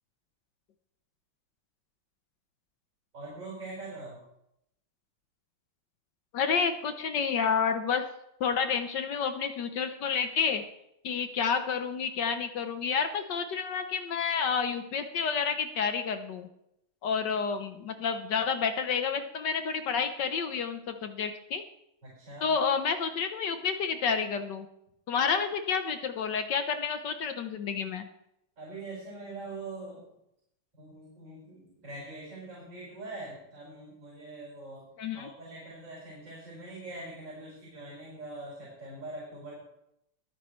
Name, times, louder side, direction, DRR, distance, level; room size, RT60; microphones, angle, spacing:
voice 1, 3.1-4.2 22.0-22.5 28.6-30.1 30.7-34.8 35.1-39.6, right 2 dB, 60° right, -5 dB, 5.8 m, -43 dB
voice 2, 6.3-8.0 8.4-10.6 11.0-16.5 17.0-21.6 22.4-24.7 25.1-28.1 35.0-35.3, left 6 dB, 60° left, 8 dB, 1.4 m, -29 dB
21.0 x 9.2 x 3.2 m, 0.80 s
omnidirectional pair, 2.3 m